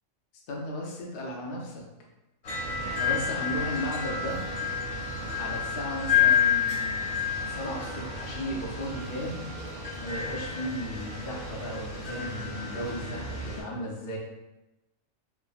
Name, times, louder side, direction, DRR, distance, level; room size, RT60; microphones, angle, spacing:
voice 1, 0.5-1.8 2.8-4.4 5.2-7.1 7.5-9.5 10.0-14.2, equal, 55° left, -2 dB, 0.6 m, -35 dB
sound 1, 2.4-13.6, left 6 dB, 80° left, 1.3 m, -30 dB
3.3 x 2.0 x 2.3 m, 0.99 s
omnidirectional pair, 1.4 m